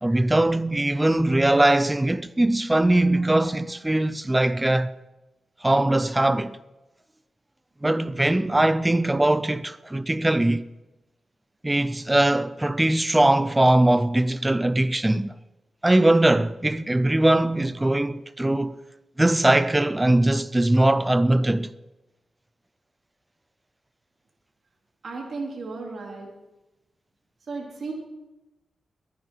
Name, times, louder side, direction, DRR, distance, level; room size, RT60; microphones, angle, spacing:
voice 1, 0.0-4.9 5.6-6.6 7.8-10.6 11.6-15.3 15.8-18.8 19.2-21.7, right 1 dB, 15° right, 0.6 m, -21 dB
voice 2, 25.0-26.3 27.5-27.9, right 3 dB, 60° right, 3.3 m, -34 dB
22.0 x 10.0 x 4.6 m
cardioid pair, 85°, 0 cm